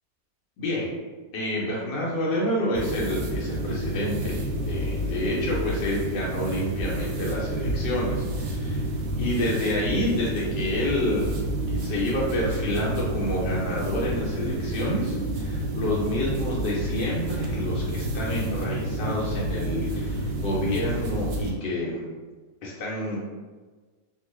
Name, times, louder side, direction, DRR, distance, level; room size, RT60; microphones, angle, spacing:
voice 1, 0.6-0.9 1.3-8.8 9.2-11.3 11.7-22.1 22.6-23.2, left 1 dB, 75° left, -5 dB, 1.3 m, -28 dB
sound 1, 2.7-21.5, right 1 dB, 90° right, 0.7 m, -29 dB
2.9 x 2.3 x 3.1 m, 1.4 s
omnidirectional pair, 2.0 m